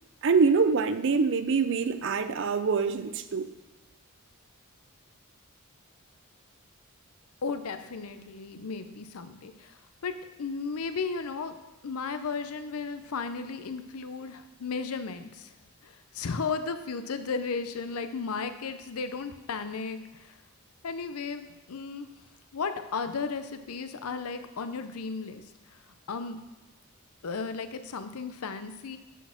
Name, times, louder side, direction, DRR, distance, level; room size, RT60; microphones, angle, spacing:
voice 1, 0.2-3.5, right 5 dB, 55° right, 11 dB, 0.5 m, -25 dB
voice 2, 7.4-9.5 10.0-10.1 10.4-11.5 11.8-15.5 16.1-20.0 20.8-22.1 22.5-25.4 26.1-26.4 27.2-29.0, left 4 dB, 80° left, 9 dB, 0.6 m, -34 dB
8.1 x 4.2 x 5.7 m, 1.1 s
head